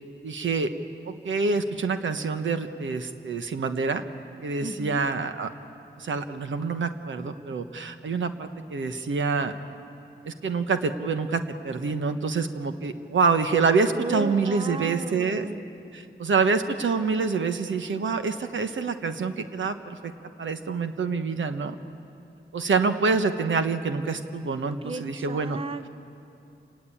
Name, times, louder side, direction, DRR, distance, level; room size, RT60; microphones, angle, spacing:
voice 1, 0.2-0.7 1.1-4.0 4.4-5.5 6.0-9.5 10.2-15.5 15.9-20.1 20.4-21.7 22.5-25.6, right 4 dB, 80° right, 8 dB, 1.2 m, -26 dB
voice 2, 4.6-5.0 13.9-15.6 24.8-25.9, right 3 dB, 30° right, 12 dB, 0.8 m, -35 dB
28.5 x 19.0 x 8.7 m, 2.7 s
wide cardioid pair, 85°, 19 cm